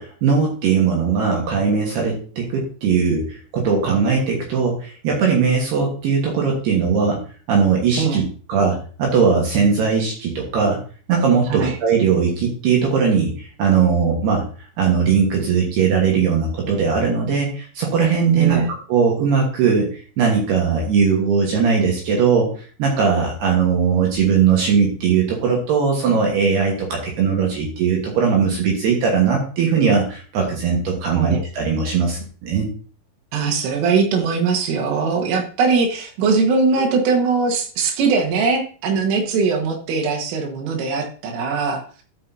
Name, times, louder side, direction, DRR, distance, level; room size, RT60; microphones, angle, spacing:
voice 1, 0.0-7.2 7.5-8.2 8.5-10.8 11.1-14.4 14.8-18.6 18.9-32.7 36.8-36.9, right 6 dB, 65° right, 0 dB, 2.9 m, -19 dB
voice 2, 18.4-18.7 31.1-31.4 33.3-42.0, right 4 dB, 80° right, 2 dB, 4.0 m, -21 dB
13.0 x 6.1 x 2.7 m, 0.41 s
omnidirectional pair, 5.8 m